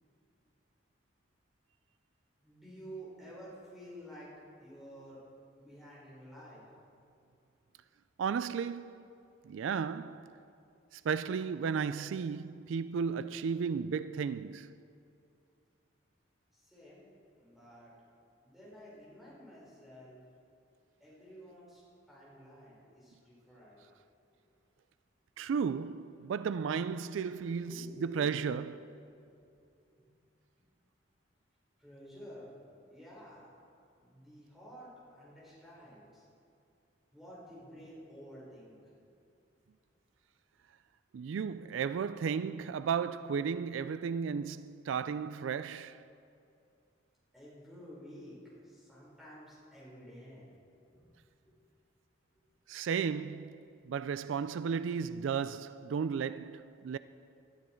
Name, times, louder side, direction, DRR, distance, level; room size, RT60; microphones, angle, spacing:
voice 1, 2.4-4.3 4.6-5.2 5.6-6.6 16.5-17.9 18.4-20.2 21.0-23.8 24.3-24.4 27.5-28.6 29.1-29.4 30.6-30.7 31.8-32.5 32.9-33.5 34.0-36.3 37.1-39.0 47.3-48.4 48.6-50.5 50.9-51.0 51.4-51.5, equal, ahead, 4.6 m, -51 dB
voice 2, 8.2-9.0 9.4-10.3 10.9-14.7 25.4-28.7 41.1-46.0 52.7-57.0, right 6 dB, 85° right, 0.3 m, -34 dB
19.5 x 12.5 x 4.5 m
head